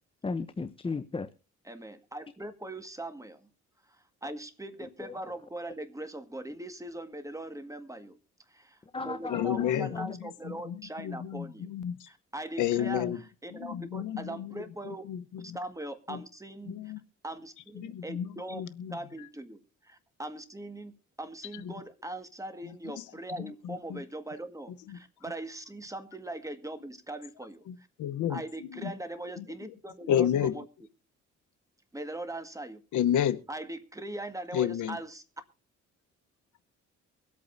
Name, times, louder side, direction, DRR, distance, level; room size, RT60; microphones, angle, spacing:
voice 1, 0.2-1.3 8.9-10.0, left 3 dB, 20° left, 12 dB, 0.7 m, -35 dB
voice 2, 1.6-3.5 3.9-8.2 8.5-11.7 12.1-15.0 15.5-16.9 17.2-17.5 18.0-18.6 18.9-19.6 20.2-20.9 21.2-24.7 25.0-27.9 28.3-30.7 31.9-32.8 33.5-35.2, right 1 dB, 10° right, 8 dB, 1.8 m, -40 dB
voice 3, 9.3-10.1 10.7-10.8 11.0-12.0 12.6-13.2 13.6-14.5 15.1-15.2 16.1-16.2 16.7-17.0 17.8-19.0 21.6-21.7 23.6-24.0 27.7-28.4 28.8-28.9 30.1-30.5 32.9-33.4 34.5-35.0, left 10 dB, 85° left, 12 dB, 1.0 m, -30 dB
23.5 x 8.6 x 2.6 m, 0.37 s
cardioid pair, 90°, 30 cm